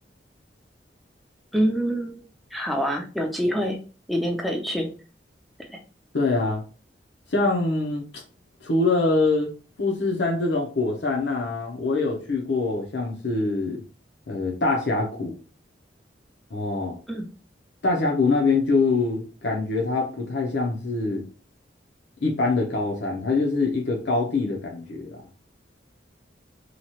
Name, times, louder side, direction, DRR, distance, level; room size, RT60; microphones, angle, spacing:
voice 1, 1.5-2.2 2.5-3.8 4.1-4.9 5.6-5.8 17.1-17.3, equal, ahead, 2 dB, 0.5 m, -26 dB
voice 2, 6.1-6.6 7.3-8.0 8.6-9.5 9.8-13.8 14.3-15.4 16.5-17.0 17.8-21.2 22.2-25.2, left 3 dB, 70° left, -1 dB, 0.7 m, -24 dB
2.9 x 2.3 x 2.9 m, 0.36 s
head